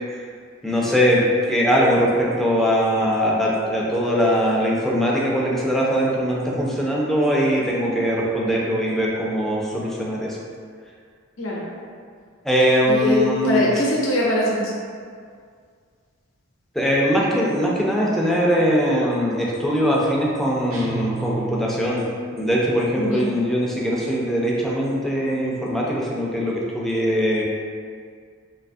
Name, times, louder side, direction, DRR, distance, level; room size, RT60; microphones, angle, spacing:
voice 1, 0.6-1.2 1.5-10.4 12.4-13.7 16.8-22.0 22.4-27.4, equal, ahead, -4 dB, 0.3 m, -21 dB
voice 2, 12.9-14.7 22.9-23.3, left 2 dB, 80° left, -4 dB, 0.6 m, -22 dB
sound 1, 20.7-22.4, right 4 dB, 75° right, 0.5 m, -33 dB
2.6 x 2.3 x 2.5 m, 2.1 s
head